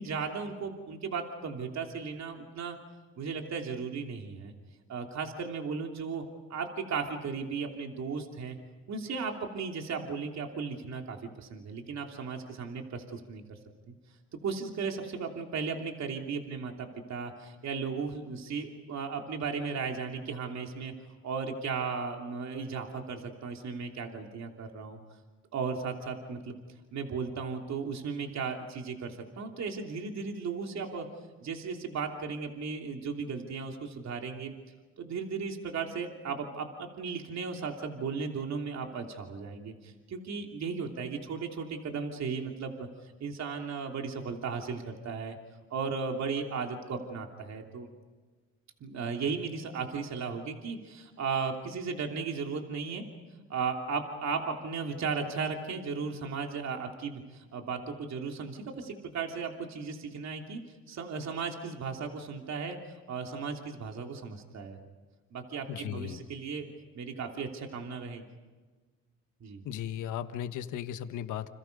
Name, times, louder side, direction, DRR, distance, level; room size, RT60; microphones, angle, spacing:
voice 1, 0.0-2.8 3.2-4.5 4.9-6.2 6.5-8.6 8.9-13.4 13.9-14.0 14.4-20.9 21.2-25.0 25.5-26.6 26.9-31.1 31.4-34.5 35.0-42.9 43.2-45.4 45.7-47.9 48.8-53.0 53.5-60.6 60.9-62.8 63.1-64.8 65.3-68.3 69.4-69.6, right 5 dB, 60° right, 3 dB, 3.1 m, -36 dB
voice 2, 65.7-66.2 69.6-71.5, left 10 dB, 85° left, 10 dB, 1.3 m, -36 dB
29.5 x 27.5 x 5.4 m, 1.4 s
cardioid pair, 90°, 30 cm